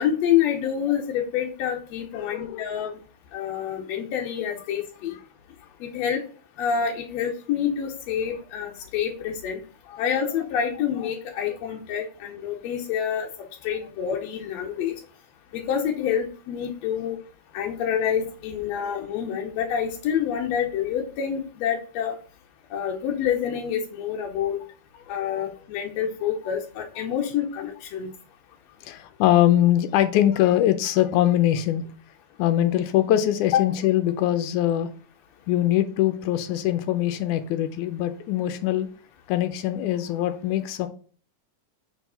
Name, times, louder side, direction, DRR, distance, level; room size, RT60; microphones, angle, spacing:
voice 1, 0.0-2.9 3.3-5.2 5.8-6.2 6.6-9.6 10.0-13.3 13.6-14.9 15.5-17.2 17.5-22.1 22.7-24.6 25.1-28.1 33.5-33.6, left 8 dB, 70° left, 1 dB, 1.8 m, -27 dB
voice 2, 2.1-2.7 9.9-10.0 25.1-25.2 28.8-31.8 32.4-34.9 35.5-38.9 39.3-40.9, left 12 dB, 90° left, 9 dB, 2.1 m, -22 dB
4.9 x 4.6 x 5.5 m, 0.41 s
omnidirectional pair, 3.4 m